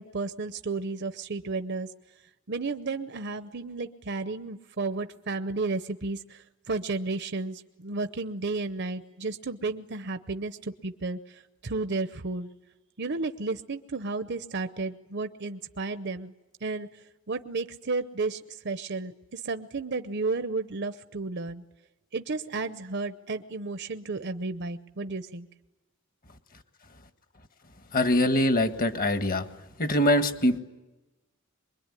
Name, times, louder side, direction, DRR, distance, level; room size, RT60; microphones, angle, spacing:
voice 1, 0.0-1.9 2.5-12.5 13.0-16.3 16.6-21.6 22.1-25.5, right 3 dB, 55° right, 11 dB, 0.8 m, -33 dB
voice 2, 27.9-29.5 29.8-30.6, left 1 dB, 45° left, 9 dB, 1.6 m, -23 dB
24.5 x 22.0 x 9.8 m, 1.1 s
head